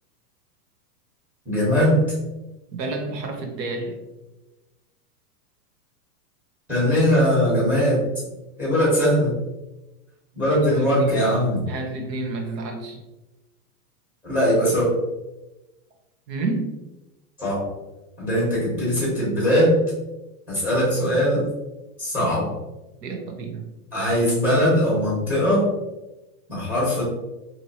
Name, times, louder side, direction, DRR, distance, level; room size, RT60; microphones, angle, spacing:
voice 1, 1.4-2.0 6.7-8.0 8.6-9.3 10.3-11.6 14.2-14.9 17.4-17.6 18.2-19.8 20.5-21.4 22.0-22.5 23.9-25.7 26.5-27.0, equal, 5° right, -7 dB, 1.2 m, -20 dB
voice 2, 2.7-4.0 10.5-11.2 11.7-13.0 16.3-16.8 23.0-23.7, right 3 dB, 80° right, 3 dB, 0.9 m, -30 dB
2.9 x 2.7 x 2.7 m, 1.0 s
supercardioid pair, 170°, 48 cm